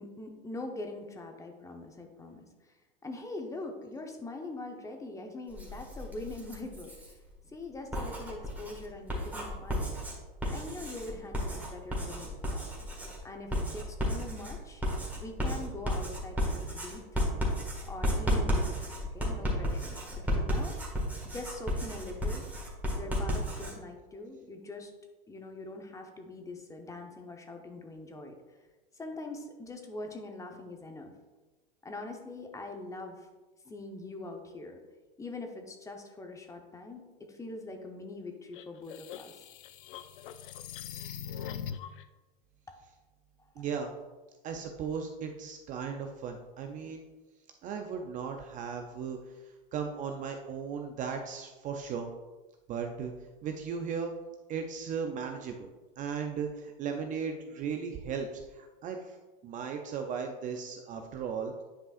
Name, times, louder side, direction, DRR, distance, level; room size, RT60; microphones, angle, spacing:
voice 1, 0.0-2.5 3.0-7.2 7.5-9.9 10.5-12.6 13.2-14.8 15.2-17.2 17.9-18.9 19.1-20.7 21.2-22.4 23.0-24.9 25.3-28.4 28.9-31.1 31.8-33.3 33.6-34.8 35.2-39.4, left 2 dB, 10° left, 4 dB, 0.8 m, -43 dB
Writing, 5.5-7.1 7.7-23.7, equal, 5° right, 1.8 m, -33 dB
sound 1, 38.5-42.0, left 8 dB, 60° left, 0.5 m, -41 dB
voice 2, 43.6-43.9 44.4-47.1 47.6-52.1 52.7-53.1 53.4-54.1 54.5-55.7 56.0-59.2 59.4-61.6, right 6 dB, 25° right, 5 dB, 0.5 m, -36 dB
9.8 x 5.4 x 2.5 m, 1.2 s
hypercardioid pair, 110°, 29 cm